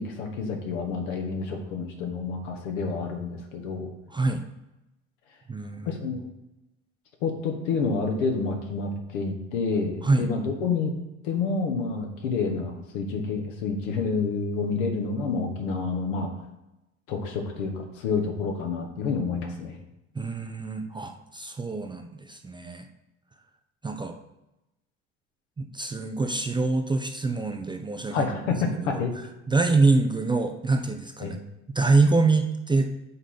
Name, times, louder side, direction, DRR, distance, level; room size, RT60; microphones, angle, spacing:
voice 1, 0.0-3.9 5.8-6.2 7.2-10.9 11.2-16.3 17.1-19.7 28.1-29.1 31.2-31.3, left 4 dB, 65° left, 3 dB, 1.4 m, -28 dB
voice 2, 4.1-4.4 5.5-6.0 10.0-10.3 20.2-22.9 23.8-24.1 25.6-28.4 28.8-29.0 29.5-31.4 31.7-32.9, right 3 dB, 10° right, 4 dB, 0.5 m, -25 dB
5.5 x 4.9 x 5.5 m, 0.95 s
figure-of-eight pair, 60°, 40 cm